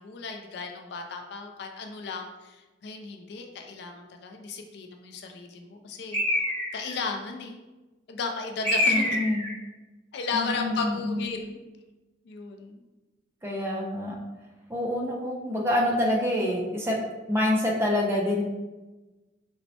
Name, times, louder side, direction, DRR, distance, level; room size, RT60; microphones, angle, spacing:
voice 1, 0.0-6.4 6.7-7.6 8.1-9.2 10.1-11.6 12.3-12.8, left 4 dB, 60° left, 4 dB, 0.3 m, -35 dB
Bird, 6.1-7.0 8.6-9.6, left 1 dB, 30° right, 0.9 m, -26 dB
voice 2, 8.9-9.4 10.3-11.2 13.4-14.1 14.7-17.0 17.3-18.4, left 1 dB, 15° right, -2 dB, 0.5 m, -26 dB
4.3 x 2.0 x 2.7 m, 1.1 s
head